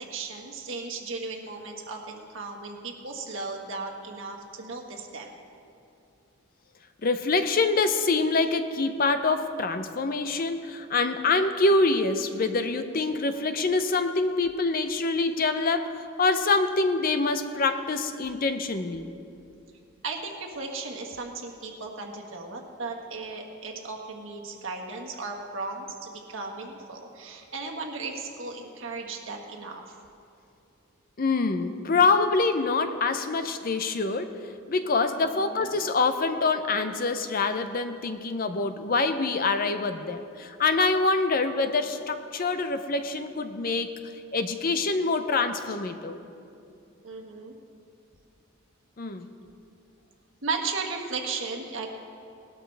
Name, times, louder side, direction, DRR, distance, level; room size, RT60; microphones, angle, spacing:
voice 1, 0.0-5.3 20.0-29.8 35.2-35.7 47.0-47.5 50.4-51.9, right 4 dB, 65° right, 0 dB, 1.6 m, -36 dB
voice 2, 7.0-19.1 31.2-34.3 34.7-43.9 44.3-46.2 49.0-49.3, left 3 dB, 40° left, 9 dB, 0.6 m, -25 dB
19.0 x 12.5 x 3.4 m, 2.6 s
head